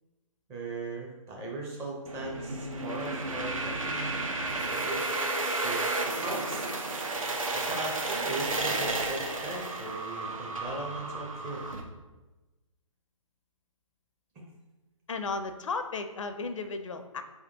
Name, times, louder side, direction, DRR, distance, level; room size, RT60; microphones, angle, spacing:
voice 1, 0.5-4.2 4.7-5.0 5.6-5.8 6.2-6.7 7.5-11.6 14.4-14.5, right 2 dB, 15° right, -1 dB, 0.5 m, -38 dB
sound 1, 2.1-11.8, right 2 dB, 75° right, 0.7 m, -32 dB
voice 2, 15.1-17.2, left 4 dB, 65° left, 8 dB, 0.4 m, -34 dB
4.5 x 3.5 x 2.8 m, 1.1 s
figure-of-eight pair, 135°, 17 cm